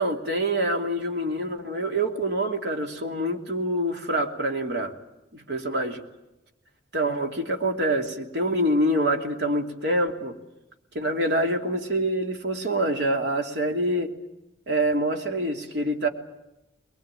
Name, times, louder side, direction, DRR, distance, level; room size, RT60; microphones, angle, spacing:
voice 1, 0.0-4.9 5.3-6.0 6.9-10.4 10.9-14.1 14.7-16.1, right 1 dB, 65° right, 3 dB, 2.8 m, -26 dB
22.0 x 21.5 x 9.1 m, 0.96 s
head